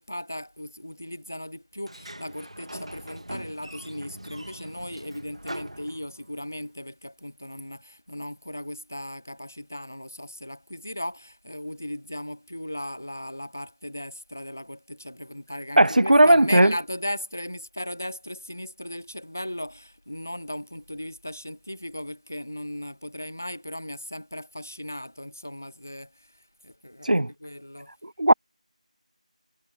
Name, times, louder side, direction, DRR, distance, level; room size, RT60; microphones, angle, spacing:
voice 1, 0.0-27.9, left 1 dB, 20° left, 0.8 m, -37 dB
Sliding door, 1.8-6.5, right 1 dB, 50° right, 2.1 m, -41 dB
voice 2, 15.8-16.7 27.0-27.3 28.0-28.3, right 1 dB, 80° right, 0.5 m, -17 dB
figure-of-eight pair, 180°, 4 cm